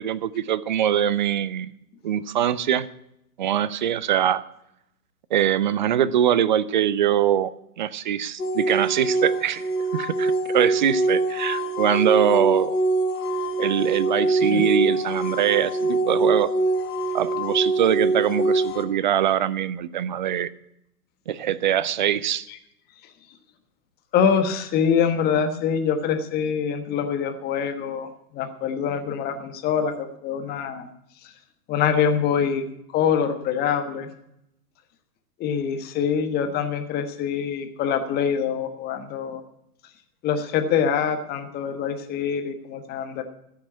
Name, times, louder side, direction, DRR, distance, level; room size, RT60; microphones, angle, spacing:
voice 1, 0.0-1.7 2.0-2.9 3.4-4.4 5.3-7.5 7.8-9.6 9.9-12.8 13.6-16.5 17.1-20.5 21.3-22.5, right 10 dB, 30° right, 18 dB, 0.4 m, -23 dB
sound 1, 8.4-18.8, right 2 dB, 75° left, 1.8 m, -24 dB
voice 2, 24.1-28.1 28.3-30.8 31.7-32.6 32.9-34.1 35.4-39.4 40.2-43.2, left 7 dB, 20° left, 7 dB, 1.3 m, -24 dB
14.5 x 6.0 x 9.5 m, 0.80 s
figure-of-eight pair, 115°, 47 cm